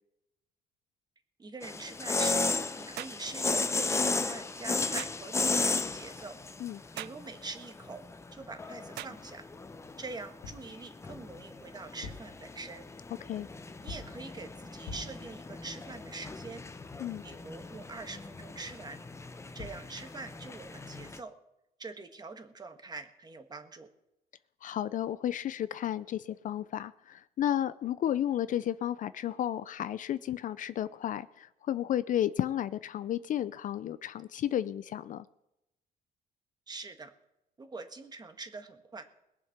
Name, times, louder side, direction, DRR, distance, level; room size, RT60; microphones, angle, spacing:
voice 1, 1.4-2.5 2.8-6.4 6.9-8.0 8.3-9.4 10.0-12.9 13.8-16.6 17.2-19.0 19.5-21.3 21.8-23.9 36.7-37.1 37.6-39.0, right 3 dB, 25° right, 7 dB, 1.6 m, -44 dB
sound 1, 1.6-21.2, left 3 dB, 15° left, 0.8 m, -35 dB
sound 2, 3.0-3.2 5.0-5.2 7.0-7.2 9.0-9.2, right 16 dB, 75° right, 0.4 m, -41 dB
sound 3, 10.4-10.7 11.8-12.4 13.9-14.2 14.8-15.3 19.3-19.4 19.6-19.9, left 4 dB, 85° left, 1.9 m, -44 dB
voice 2, 24.6-35.3, left 11 dB, 50° left, 15 dB, 0.5 m, -32 dB
21.0 x 7.4 x 5.9 m, 0.89 s
cardioid pair, 110°, 17 cm